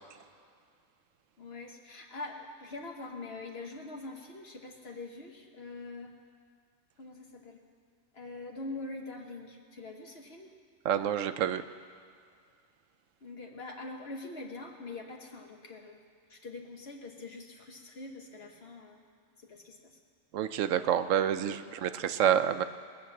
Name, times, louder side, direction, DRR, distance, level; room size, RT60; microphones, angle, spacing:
voice 1, 1.4-6.1 7.0-7.6 8.1-10.5 13.2-16.0 16.3-19.0 19.4-20.0 21.7-21.8, left 2 dB, 55° left, 1 dB, 1.4 m, -44 dB
voice 2, 10.8-11.6 20.3-22.6, right 9 dB, 80° right, 12 dB, 1.0 m, -28 dB
20.0 x 7.7 x 7.1 m, 2.2 s
omnidirectional pair, 1.3 m